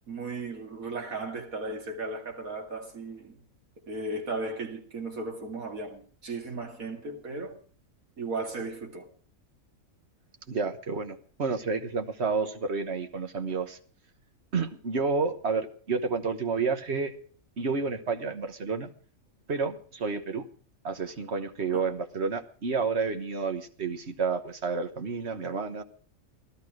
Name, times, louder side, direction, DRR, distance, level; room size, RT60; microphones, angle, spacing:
voice 1, 0.1-3.4 3.9-7.6 8.2-9.1 21.7-21.8, right 3 dB, 85° right, 2.7 m, -36 dB
voice 2, 10.5-13.8 14.5-17.1 17.6-18.9 19.5-20.4 20.8-25.8, right 4 dB, 55° right, 1.5 m, -30 dB
15.5 x 12.5 x 5.0 m
omnidirectional pair, 1.4 m